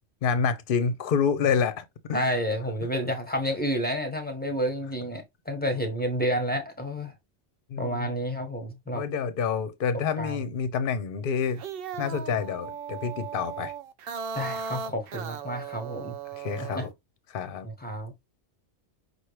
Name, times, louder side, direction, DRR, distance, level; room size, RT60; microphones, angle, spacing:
voice 1, 0.2-2.4 7.7-8.2 8.9-11.6 12.0-13.7 16.4-16.9 17.3-17.7, left 6 dB, 55° left, 0.8 m, -28 dB
voice 2, 2.1-7.1 7.8-9.0 10.2-10.4 14.3-16.1 16.6-16.8 17.6-18.1, equal, 10° left, 1.2 m, -30 dB
sound 1, 11.4-16.9, right 6 dB, 60° right, 0.7 m, -37 dB
5.8 x 2.5 x 3.2 m
omnidirectional pair, 1.2 m